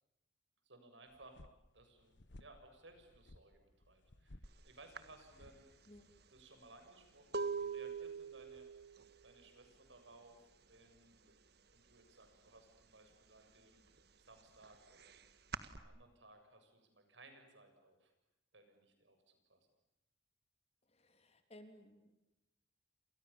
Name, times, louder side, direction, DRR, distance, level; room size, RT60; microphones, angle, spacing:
voice 1, 0.7-1.4 1.7-5.6 6.3-8.7 9.2-11.3 11.7-13.8 14.2-18.1 18.5-19.7, right 2 dB, 75° right, 6 dB, 7.3 m, -61 dB
sound 1, 1.1-6.5, left 1 dB, 70° left, 1.3 m, -61 dB
sound 2, 4.4-4.6 4.9-10.6 10.9-11.4 11.7-12.8 13.2-15.8, right 5 dB, 60° right, 1.7 m, -44 dB
voice 2, 20.9-22.1, left 1 dB, 35° left, 8 dB, 3.3 m, -59 dB
29.5 x 27.5 x 7.1 m, 0.96 s
head